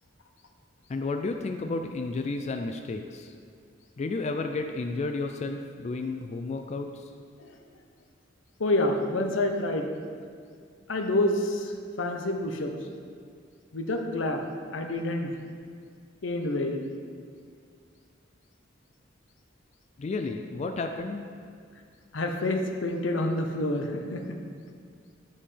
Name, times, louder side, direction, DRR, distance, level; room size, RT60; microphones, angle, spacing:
voice 1, 0.9-3.3 4.0-7.1 20.0-21.2, left 3 dB, 35° left, 5 dB, 0.3 m, -32 dB
voice 2, 8.6-9.9 10.9-12.7 13.7-14.4 14.7-15.3 16.2-16.9 22.1-24.4, left 1 dB, 85° left, 4 dB, 0.8 m, -28 dB
10.5 x 5.5 x 3.3 m, 2.2 s
head